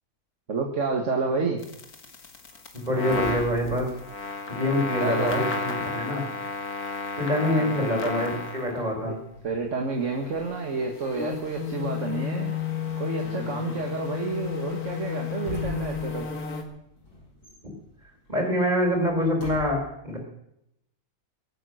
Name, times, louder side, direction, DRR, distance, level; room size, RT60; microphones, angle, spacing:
voice 1, 0.5-1.6 5.0-5.4 7.5-8.0 9.0-9.2 9.4-12.5 13.0-16.3, right 4 dB, 50° right, 2 dB, 1.9 m, -29 dB
sound 1, 1.0-5.4 5.7-19.6, left 1 dB, 90° left, 7.5 m, -45 dB
sound 2, 1.6-8.9 10.0-16.6, left 6 dB, 70° left, 2.4 m, -32 dB
voice 2, 2.7-4.0 4.5-6.3 7.1-9.2 18.3-20.2, left 1 dB, 25° right, 1 dB, 4.6 m, -25 dB
23.0 x 9.2 x 6.4 m, 0.80 s
omnidirectional pair, 1.6 m